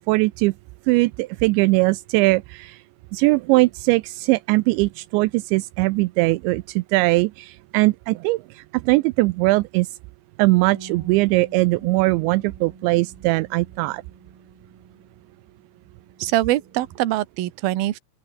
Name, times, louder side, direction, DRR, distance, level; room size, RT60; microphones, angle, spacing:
voice 1, 0.1-0.5 0.9-2.8 3.1-8.4 8.7-9.9 10.4-14.0, right 22 dB, 85° right, 2.6 m, -20 dB
Bass guitar, 10.7-17.0, right 4 dB, 45° right, 9.7 m, -47 dB
voice 2, 16.2-18.0, right 15 dB, 65° right, 2.5 m, -23 dB
open air
omnidirectional pair, 5.8 m